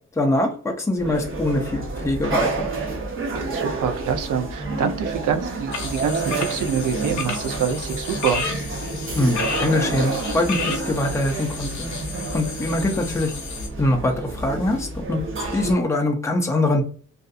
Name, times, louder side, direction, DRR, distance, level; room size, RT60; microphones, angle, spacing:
voice 1, 0.2-2.7 9.1-11.9 12.3-13.3 13.8-15.2 15.5-16.8, left 1 dB, 10° left, 1 dB, 0.5 m, -23 dB
sound 1, 1.0-15.7, right 3 dB, 40° right, 0.8 m, -29 dB
voice 2, 3.3-8.4, right 7 dB, 75° right, 7 dB, 0.6 m, -26 dB
sound 2, 5.7-13.7, left 5 dB, 65° left, 0.7 m, -33 dB
2.6 x 2.4 x 2.4 m, 0.44 s
wide cardioid pair, 140°, 31 cm